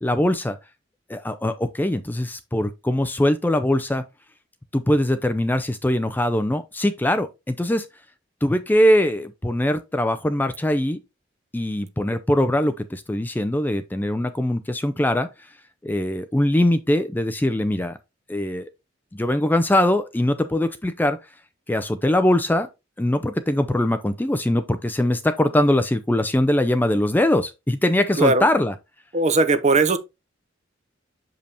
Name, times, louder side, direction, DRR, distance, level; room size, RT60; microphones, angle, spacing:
voice 1, 0.0-0.6 1.1-4.0 4.7-7.9 8.4-11.0 11.5-15.3 15.8-18.0 18.3-18.7 19.1-21.2 21.7-22.7 23.0-28.7, left 1 dB, 10° left, 0.4 m, -22 dB
voice 2, 29.1-30.0, right 3 dB, 35° right, 0.6 m, -18 dB
6.7 x 5.2 x 2.8 m
head